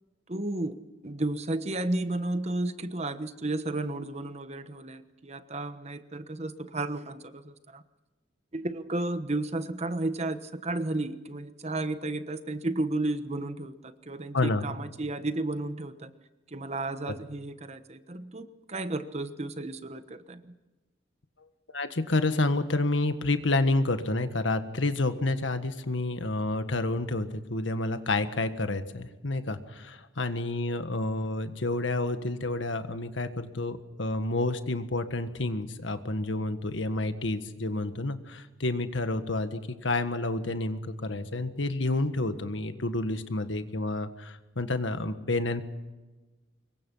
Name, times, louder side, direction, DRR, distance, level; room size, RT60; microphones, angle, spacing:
voice 1, 0.3-0.8 1.0-7.8 8.5-16.1 16.5-20.5, right 2 dB, 35° right, 11 dB, 1.2 m, -33 dB
voice 2, 14.3-14.7 21.7-45.6, left 2 dB, 75° left, 9 dB, 1.6 m, -29 dB
25.5 x 22.5 x 5.7 m, 1.2 s
head